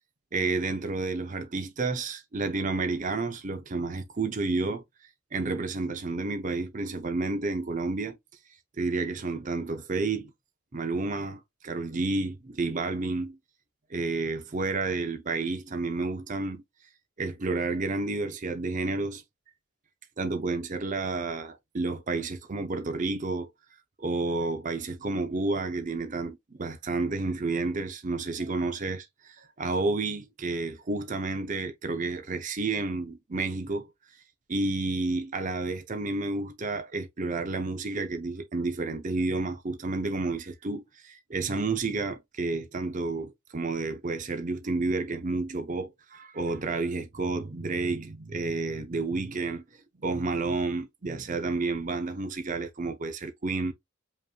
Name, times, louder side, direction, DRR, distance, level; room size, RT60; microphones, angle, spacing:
voice 1, 0.3-4.8 5.3-8.2 8.8-10.3 10.7-13.4 13.9-16.6 17.2-19.2 20.2-23.5 24.0-33.9 34.5-49.6 50.0-53.7, right 3 dB, 35° right, 0.6 m, -30 dB
5.2 x 3.0 x 2.4 m
head